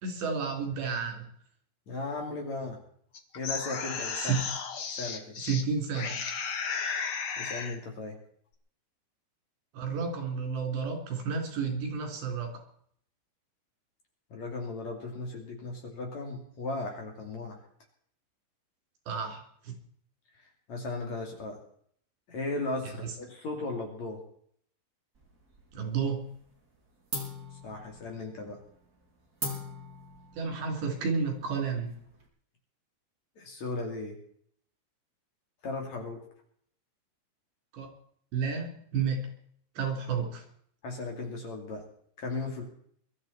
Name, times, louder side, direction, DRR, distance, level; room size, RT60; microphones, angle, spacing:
voice 1, 0.0-1.2 4.0-4.4 5.4-6.2 9.7-12.6 19.1-19.7 25.7-26.2 30.3-31.9 37.7-37.9 38.3-39.2 39.8-40.4, right 5 dB, 80° right, 2 dB, 5.8 m, -31 dB
voice 2, 1.9-2.8 3.4-4.4 5.0-5.4 7.4-8.2 14.3-17.6 20.7-21.6 22.3-24.2 27.6-28.6 33.4-34.2 35.6-36.2 40.8-41.8 42.2-42.6, left 2 dB, 45° left, 2 dB, 3.6 m, -36 dB
sound 1, 3.1-5.6 5.9-7.8, left 6 dB, 75° left, 1.2 m, -34 dB
sound 2, 25.2-26.0 26.3-26.8 27.1-32.3, equal, 25° right, 3.2 m, -41 dB
22.5 x 13.0 x 4.4 m, 0.63 s
omnidirectional pair, 4.9 m